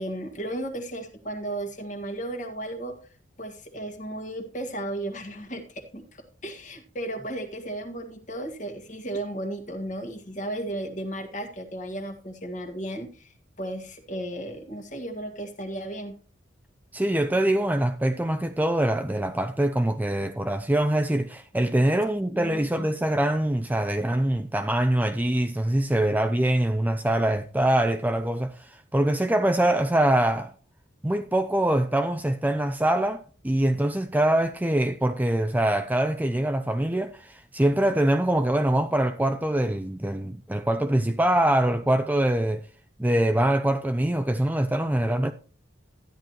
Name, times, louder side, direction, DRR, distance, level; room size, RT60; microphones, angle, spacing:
voice 1, 0.0-2.9 3.4-16.2 22.3-22.9, right 1 dB, 40° left, 1.8 m, -34 dB
voice 2, 16.9-30.5 31.0-42.6 43.0-45.3, right 1 dB, 10° right, 0.4 m, -24 dB
13.0 x 10.5 x 3.0 m
head